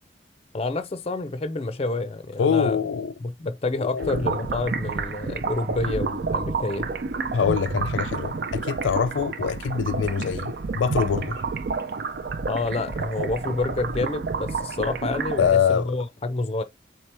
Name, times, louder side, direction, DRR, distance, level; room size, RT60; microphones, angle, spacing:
voice 1, 0.5-2.8 3.2-6.9 12.5-16.6, left 2 dB, 35° left, 0.5 m, -28 dB
voice 2, 2.4-3.1 3.8-4.4 7.3-11.4 15.4-16.0, left 7 dB, 90° left, 0.4 m, -24 dB
sound 1, 4.0-15.5, right 4 dB, 55° right, 0.4 m, -30 dB
4.4 x 3.3 x 3.4 m
head